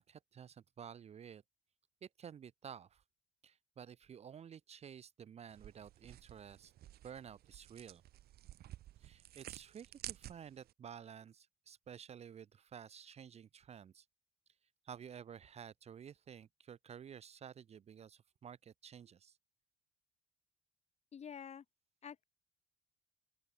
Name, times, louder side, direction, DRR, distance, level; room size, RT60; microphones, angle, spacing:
voice 1, 0.0-1.4 2.0-3.0 3.4-6.7 7.0-8.0 9.0-14.0 14.8-19.4, right 8 dB, 40° right, 0.8 m, -52 dB
sound 1, 5.5-10.7, right 13 dB, 65° right, 1.9 m, -52 dB
voice 2, 21.1-21.6 22.0-22.2, left 7 dB, 40° left, 2.2 m, -48 dB
open air
cardioid pair, 110°, 17 cm